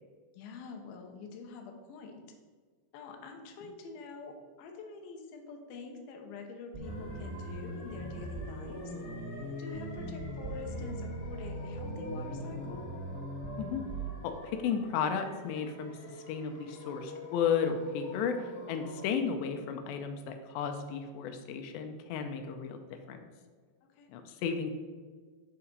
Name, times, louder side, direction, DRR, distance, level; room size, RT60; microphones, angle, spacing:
voice 1, 0.3-2.2 2.9-9.0 9.6-12.9 23.8-24.1, left 4 dB, 70° left, 3 dB, 2.5 m, -46 dB
sound 1, 6.7-14.1, right 1 dB, 35° right, 1.8 m, -40 dB
sound 2, 6.8-19.1, equal, 50° left, 2.8 m, -47 dB
voice 2, 14.2-16.0 16.3-18.4 18.7-23.2 24.1-24.7, left 7 dB, 90° left, 6 dB, 2.9 m, -33 dB
6.9 x 5.7 x 5.3 m, 1.5 s
omnidirectional pair, 4.9 m